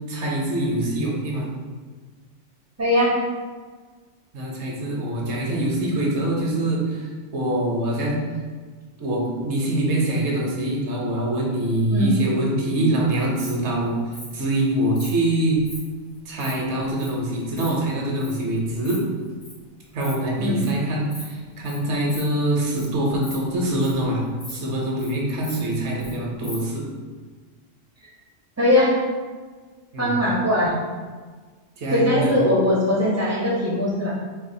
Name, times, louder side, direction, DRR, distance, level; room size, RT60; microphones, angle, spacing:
voice 1, 0.0-1.5 4.3-8.2 9.0-14.0 14.3-15.6 16.3-19.0 19.9-24.2 24.5-26.9 29.9-30.1 31.8-32.5, right 1 dB, 65° right, -2 dB, 0.9 m, -24 dB
voice 2, 2.8-3.1 11.9-12.1 20.4-20.6 28.6-28.9 30.0-30.7 31.9-34.1, left 1 dB, 20° right, -6 dB, 0.4 m, -20 dB
Insect, 13.1-13.5 14.1-14.3 14.9-15.1 15.6-15.8 16.1-16.5 17.0-17.1 17.4-17.7 18.2-18.3 18.7-19.0 19.2-19.5 19.9-20.1 20.4-20.7 21.1-21.3 21.6-21.8 22.1-22.2 22.6-22.8 23.1-24.0 24.4-24.5 24.8-25.1 25.4-26.1 26.4-26.6, left 1 dB, 75° left, 1.9 m, -39 dB
4.0 x 2.3 x 2.6 m, 1.5 s
omnidirectional pair, 1.3 m